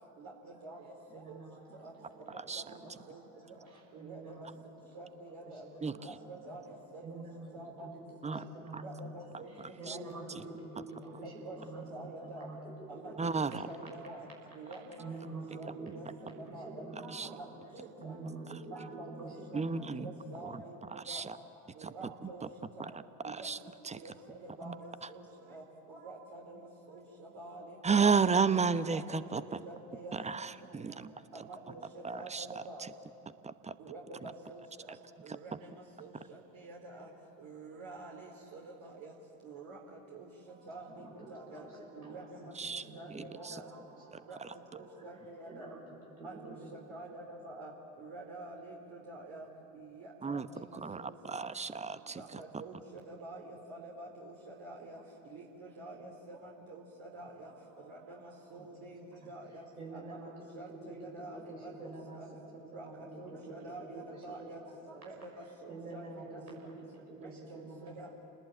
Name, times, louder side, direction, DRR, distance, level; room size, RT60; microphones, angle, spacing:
voice 1, 0.2-0.8 1.1-1.4 1.8-1.9 2.3-2.8 3.1-3.2 3.9-4.5 4.9-5.6 5.9-7.2 7.5-7.9 8.3-8.4 8.8-9.5 9.8-10.0 11.2-12.5 12.9-13.3 13.7-14.2 14.6-15.1 15.5-17.5 17.7-18.1 18.7-19.6 20.0-20.8 21.1-21.3 21.8-22.4 22.8-22.9 23.2-23.5 24.0-25.2 25.5-25.6 25.9-26.6 26.9-27.8 28.9-29.0 29.3-30.4 30.9-31.0 31.3-31.8 32.1-32.9 33.8-34.9 35.2-35.5 36.0-37.1 37.4-39.1 39.4-39.8 40.1-40.3 40.7-40.9 41.3-41.6 41.9-42.4 42.7-43.6 44.3-44.4 44.7-45.8 46.2-46.5 46.9-47.7 48.0-49.5 49.7-51.1 52.1-55.0 55.3-57.5 57.9-59.0 59.3-59.6 59.9-62.3 62.7-62.9 63.2-64.6 65.0-66.4 67.2-68.1, right 2 dB, 50° right, -2 dB, 4.2 m, -47 dB
voice 2, 1.1-1.6 2.4-3.3 3.6-4.4 5.4-6.1 7.0-9.1 9.5-12.6 12.9-13.1 13.5-14.1 15.0-15.9 16.2-17.4 18.0-20.3 40.9-41.7 42.0-43.1 44.2-44.3 44.8-45.0 45.4-45.8 46.2-46.7 58.6-58.7 59.2-59.3 59.8-60.3 60.7-65.0 65.7-67.9, right 2 dB, 85° right, -3 dB, 6.3 m, -47 dB
voice 3, 9.6-10.0 10.3-10.4 13.2-13.7 17.1-17.3 18.5-18.6 19.5-20.1 20.4-20.6 20.9-21.4 21.8-21.9 22.2-22.5 22.8-23.6 23.8-24.1 24.6-24.8 27.8-29.6 30.1-31.3 32.0-32.9 33.4-33.8 34.2-34.3 34.9-35.0 42.6-42.8 43.1-43.6 44.1-44.5 50.2-52.4, right 5 dB, 15° right, 13 dB, 1.0 m, -33 dB
29.5 x 20.0 x 9.0 m, 2.9 s
figure-of-eight pair, 65°, 43 cm